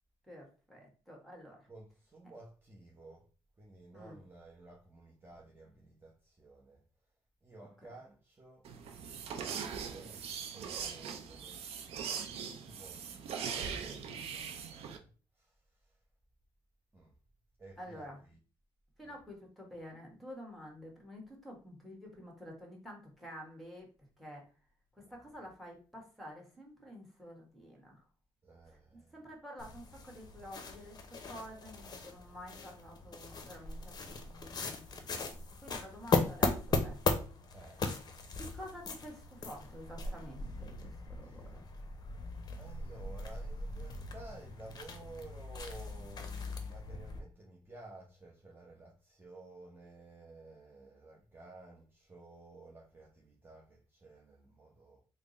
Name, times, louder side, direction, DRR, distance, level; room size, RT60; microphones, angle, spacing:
voice 1, 0.2-1.7 3.9-4.2 17.8-18.2 19.0-23.9 24.2-24.4 24.9-28.0 29.1-37.0 38.3-41.6, equal, ahead, 1.3 m, -50 dB
voice 2, 1.7-3.2 3.6-6.8 7.4-8.7 9.4-16.0 16.9-17.1 17.6-18.4 19.0-19.2 25.0-25.2 28.4-29.1 33.8-34.3 36.0-36.2 37.5-37.9 41.2-41.4 42.6-55.0, right 2 dB, 20° right, 0.8 m, -54 dB
sound 1, 8.6-15.0, right 7 dB, 75° right, 0.5 m, -41 dB
sound 2, 29.6-47.2, left 3 dB, 40° left, 0.6 m, -38 dB
3.4 x 2.0 x 3.8 m
cardioid pair, 90°, 10 cm